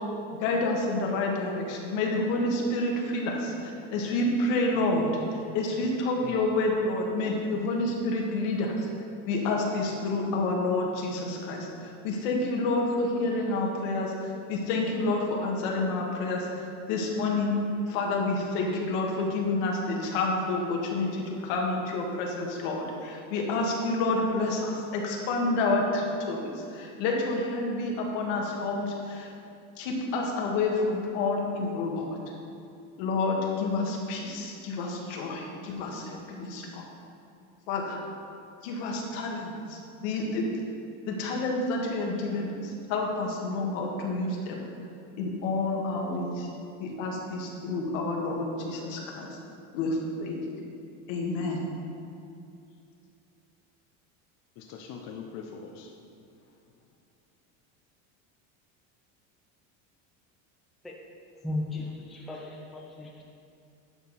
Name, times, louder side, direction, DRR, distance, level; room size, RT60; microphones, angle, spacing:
voice 1, 0.4-5.1 5.5-8.9 9.3-17.5 17.9-29.3 29.8-32.1 33.0-36.8 37.7-38.0 38.6-40.5 41.1-44.6 45.2-46.5 46.8-49.4 49.7-50.4 51.1-51.6, left 2 dB, 75° left, 0 dB, 1.7 m, -29 dB
voice 2, 4.7-5.2 6.2-6.6 54.6-55.9 56.4-56.6, left 6 dB, 45° left, 1 dB, 0.7 m, -43 dB
voice 3, 61.4-63.2, left 2 dB, ahead, -2 dB, 0.4 m, -35 dB
10.5 x 6.5 x 4.1 m, 2.5 s
cardioid pair, 175°, 38 cm